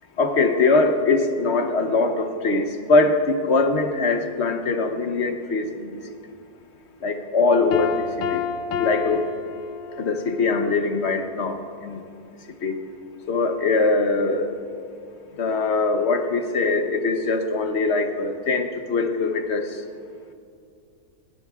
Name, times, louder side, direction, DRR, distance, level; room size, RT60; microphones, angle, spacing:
voice 1, 0.2-6.0 7.0-8.4 8.8-9.3 10.0-12.0 12.6-12.8 13.3-14.5 15.4-19.8, left 3 dB, 50° left, 6 dB, 1.0 m, -22 dB
Piano, 7.7-10.3, left 7 dB, 85° left, 1.3 m, -28 dB
20.0 x 15.5 x 2.4 m, 2.4 s
omnidirectional pair, 1.8 m